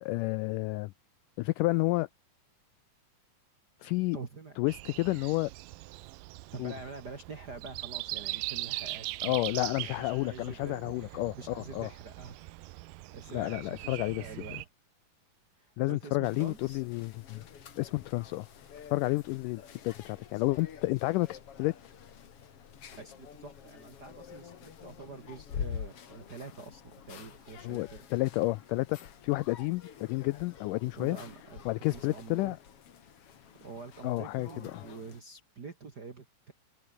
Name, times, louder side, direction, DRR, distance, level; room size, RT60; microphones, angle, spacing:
voice 1, 0.0-0.9 1.4-2.1 3.8-4.2 4.6-5.5 6.6-6.7 9.2-11.9 13.3-14.3 15.8-17.4 17.8-18.5 18.9-21.9 27.6-31.2 31.7-32.6 34.0-34.8, left 20 dB, 85° left, 1.9 m, -31 dB
voice 2, 4.1-4.6 6.5-12.5 13.1-14.7 15.6-16.8 23.0-28.0 30.8-32.6 33.6-36.5, right 4 dB, 40° right, 1.6 m, -46 dB
Breathing, 4.7-14.7, right 19 dB, 80° right, 2.2 m, -41 dB
sound 1, 16.2-35.2, left 8 dB, 45° left, 2.5 m, -47 dB
omnidirectional pair, 4.2 m